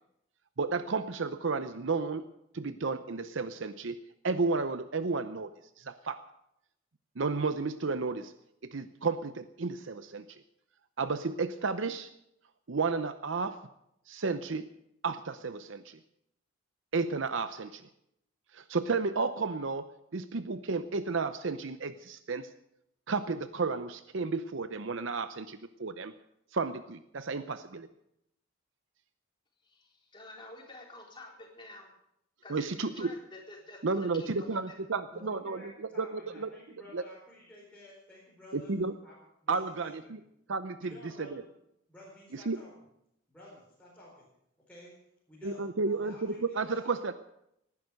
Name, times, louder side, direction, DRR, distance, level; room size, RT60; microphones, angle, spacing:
voice 1, 0.6-2.2 2.5-6.2 7.2-8.3 8.6-10.4 11.0-12.1 12.7-13.6 14.1-14.7 15.0-16.0 16.9-17.9 18.5-22.5 23.1-26.1 26.5-27.9 32.5-33.1 33.8-35.6 36.0-36.5 36.9-37.0 38.5-38.9 39.5-40.2 40.5-40.9 41.2-41.4 42.3-42.6 45.4-47.1, right 4 dB, 65° right, 11 dB, 0.7 m, -32 dB
voice 2, 29.6-31.8 32.4-34.6, left 2 dB, 25° left, -1 dB, 4.2 m, -49 dB
voice 3, 35.1-38.7 39.0-39.2 39.4-40.2 40.8-41.5 41.9-42.9 43.3-44.2 44.7-44.9 45.3-46.9, left 1 dB, 5° left, -7 dB, 4.7 m, -52 dB
19.0 x 11.0 x 6.5 m, 0.79 s
head